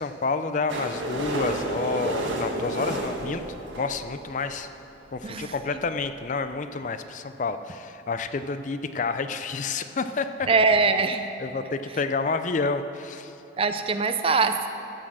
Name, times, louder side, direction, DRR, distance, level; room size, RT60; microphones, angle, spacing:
voice 1, 0.0-3.4 3.8-4.7 5.1-10.5 11.4-13.4, left 4 dB, 40° left, 10 dB, 0.4 m, -29 dB
sound 1, 0.7-4.6 5.2-5.3 5.5-5.6 5.8-5.9 6.2-6.3, right 1 dB, 80° right, 1.4 m, -31 dB
voice 2, 5.2-5.5 10.5-11.3 13.6-14.7, right 4 dB, 30° right, 8 dB, 0.5 m, -22 dB
15.0 x 6.5 x 6.1 m, 2.8 s
head